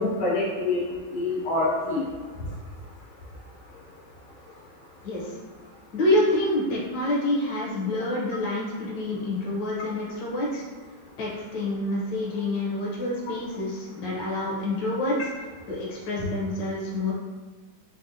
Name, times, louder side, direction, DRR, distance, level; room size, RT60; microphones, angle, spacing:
voice 1, 0.0-2.1, left 2 dB, 85° left, -6 dB, 2.1 m, -26 dB
voice 2, 5.0-5.4 5.9-10.6 11.2-15.2 15.7-17.1, left 1 dB, 65° left, -5 dB, 1.4 m, -27 dB
4.2 x 3.0 x 2.6 m, 1.4 s
omnidirectional pair, 2.3 m